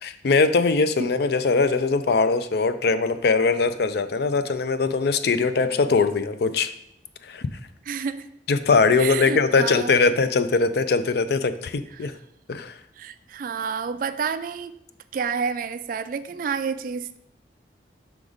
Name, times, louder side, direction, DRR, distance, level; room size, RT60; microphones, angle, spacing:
voice 1, 0.0-6.7 7.2-7.5 8.5-12.1 12.5-12.7, left 4 dB, 60° left, 11 dB, 0.4 m, -21 dB
voice 2, 7.9-8.3 9.0-10.0 11.9-12.1 13.0-14.8 15.1-17.2, right 6 dB, 50° right, 13 dB, 0.3 m, -29 dB
5.9 x 3.9 x 4.9 m, 0.74 s
head